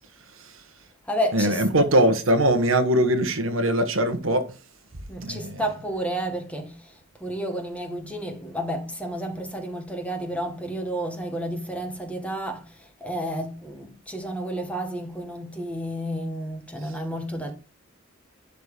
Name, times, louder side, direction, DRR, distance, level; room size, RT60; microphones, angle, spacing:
voice 1, 0.2-0.7 1.3-4.6 5.2-5.6 16.8-17.0, right 1 dB, 75° right, 1.4 m, -22 dB
voice 2, 1.0-1.6 5.1-17.5, equal, 5° left, 1.8 m, -31 dB
11.0 x 4.2 x 5.2 m
head